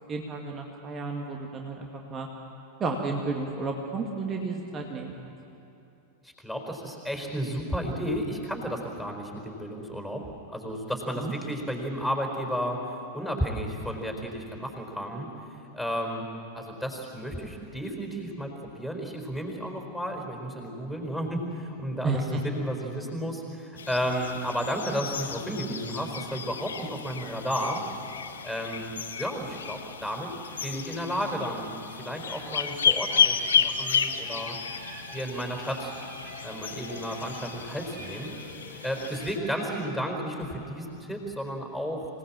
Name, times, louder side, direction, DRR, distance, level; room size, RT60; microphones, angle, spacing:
voice 1, 0.1-2.3 2.8-5.1 11.2-11.3 22.0-22.4, right 3 dB, 25° right, 2 dB, 1.9 m, -32 dB
voice 2, 6.2-16.3 16.5-27.8 28.4-30.3 30.6-34.6 35.1-35.9 36.4-38.3 38.7-42.0, equal, ahead, 2 dB, 4.5 m, -33 dB
sound 1, 23.8-39.4, left 7 dB, 70° left, 1.1 m, -32 dB
sound 2, 30.3-39.9, right 2 dB, 60° right, 6.8 m, -47 dB
26.0 x 18.5 x 7.4 m, 2.8 s
figure-of-eight pair, 90°, 0 cm